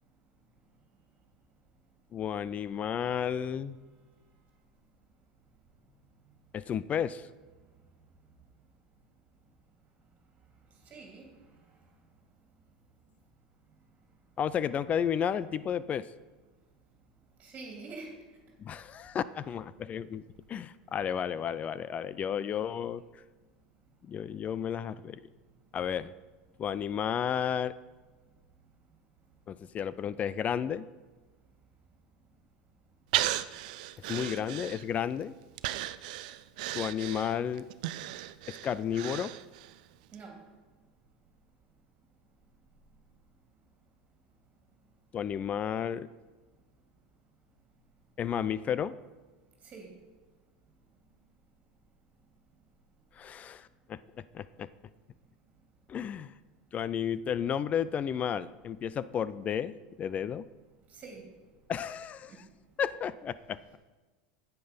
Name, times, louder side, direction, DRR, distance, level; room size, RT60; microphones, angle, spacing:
voice 1, 2.1-3.8 6.5-7.2 14.4-16.1 18.6-20.2 20.5-23.0 24.1-25.2 25.7-26.1 26.6-27.7 29.5-30.9 34.1-35.3 36.7-37.7 38.5-39.3 45.1-46.1 48.2-48.9 53.2-54.0 54.3-54.7 55.9-56.3 56.7-59.7 60.0-60.5 61.7-62.3 62.8-63.8, left 8 dB, 30° left, 17 dB, 0.4 m, -32 dB
voice 2, 10.9-11.3 17.4-18.1 34.0-34.6 40.1-40.4 49.6-49.9 60.9-61.3, right 3 dB, 30° right, 0 dB, 2.5 m, -46 dB
Breathing, 33.1-35.1 35.6-39.8 40.1-40.2, right 15 dB, 70° right, 0.5 m, -35 dB
9.1 x 8.2 x 5.2 m, 1.3 s
hypercardioid pair, 100°, 4 cm